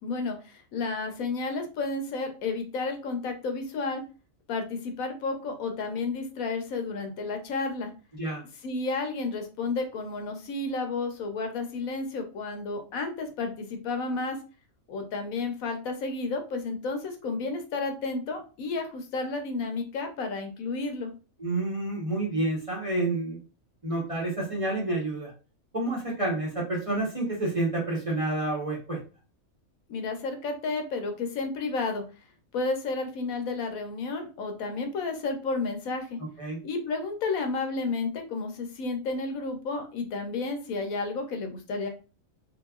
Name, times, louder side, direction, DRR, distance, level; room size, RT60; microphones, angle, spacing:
voice 1, 0.0-4.0 4.5-7.9 8.6-14.4 14.9-21.1 29.9-32.0 32.5-36.2 36.6-41.9, left 3 dB, 80° left, 5 dB, 1.2 m, -31 dB
voice 2, 21.4-23.4 23.8-25.3 25.7-29.0 36.4-36.6, right 2 dB, 25° right, -4 dB, 1.0 m, -29 dB
3.3 x 3.0 x 2.3 m, 0.34 s
omnidirectional pair, 1.5 m